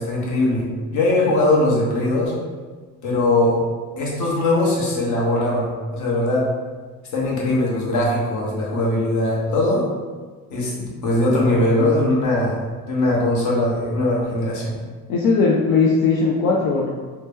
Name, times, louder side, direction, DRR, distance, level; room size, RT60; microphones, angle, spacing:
voice 1, 0.0-2.3 3.0-3.6 4.0-6.5 7.1-9.9 10.5-12.6 12.9-14.7, left 1 dB, 55° left, -4 dB, 0.9 m, -20 dB
voice 2, 15.1-16.9, left 4 dB, 80° left, -3 dB, 0.5 m, -18 dB
2.9 x 2.1 x 3.4 m, 1.4 s
cardioid pair, 125°, 35 cm